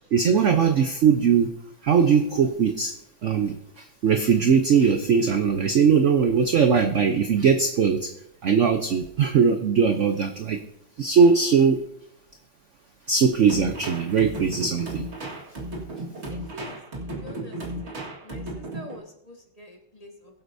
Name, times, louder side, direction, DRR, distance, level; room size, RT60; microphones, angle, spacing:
voice 1, 0.1-1.5 1.8-2.9 3.2-8.1 8.4-10.6 11.0-11.8 13.1-15.1, right 6 dB, 65° right, 7 dB, 0.7 m, -20 dB
sound 1, 13.5-19.0, right 1 dB, 35° right, 1.9 m, -35 dB
voice 2, 16.3-20.4, left 1 dB, 20° left, 1 dB, 1.3 m, -46 dB
21.0 x 7.9 x 2.6 m, 0.78 s
omnidirectional pair, 2.1 m